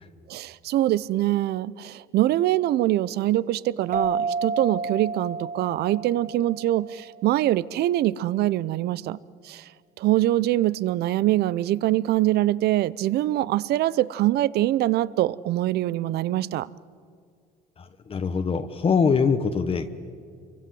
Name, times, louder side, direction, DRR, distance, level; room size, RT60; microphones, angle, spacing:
voice 1, 0.3-9.2 9.4-9.7 10.0-16.7, right 14 dB, 70° right, 19 dB, 0.7 m, -24 dB
sound 1, 3.9-7.2, right 4 dB, 50° right, 2.1 m, -30 dB
voice 2, 17.8-20.0, left 5 dB, 35° left, 9 dB, 1.2 m, -23 dB
29.0 x 24.0 x 7.8 m, 2.2 s
cardioid pair, 110°, 17 cm